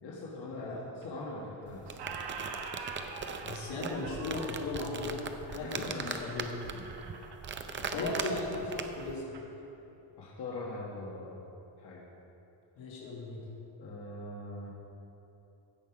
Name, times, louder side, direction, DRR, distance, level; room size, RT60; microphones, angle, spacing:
voice 1, 0.0-1.9 5.6-6.3 7.8-8.1 10.2-11.4 11.8-12.0 13.8-14.7, left 2 dB, 55° left, -5 dB, 1.6 m, -42 dB
voice 2, 0.6-0.9 3.4-5.2 5.5-6.5 7.9-9.4 12.8-13.4, left 2 dB, 80° left, -5 dB, 2.5 m, -37 dB
Squeak, 1.0-1.6 1.8-9.5, right 5 dB, 55° right, 1.1 m, -45 dB
sound 1, 1.7-9.1, right 5 dB, 25° right, 0.4 m, -40 dB
16.0 x 5.7 x 5.0 m, 2.9 s
cardioid pair, 160°, 47 cm